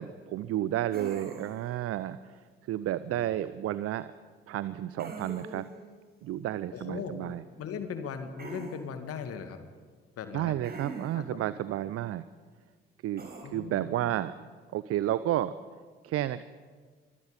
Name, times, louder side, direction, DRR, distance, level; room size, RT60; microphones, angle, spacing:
voice 1, 0.0-2.4 2.7-4.1 4.5-5.7 6.2-7.4 10.3-12.2 13.0-14.5 14.7-15.5 16.0-16.4, right 13 dB, 50° right, 15 dB, 0.8 m, -31 dB
sound 1, 0.9-1.7 5.0-5.8 8.4-8.8 10.6-11.3 13.2-13.4, right 3 dB, 30° right, 5.8 m, -42 dB
voice 2, 6.7-9.6 10.2-10.5 11.1-11.4 13.4-14.1, left 6 dB, 50° left, 8 dB, 2.1 m, -39 dB
26.5 x 25.0 x 5.2 m, 1.5 s
figure-of-eight pair, 45°, 30 cm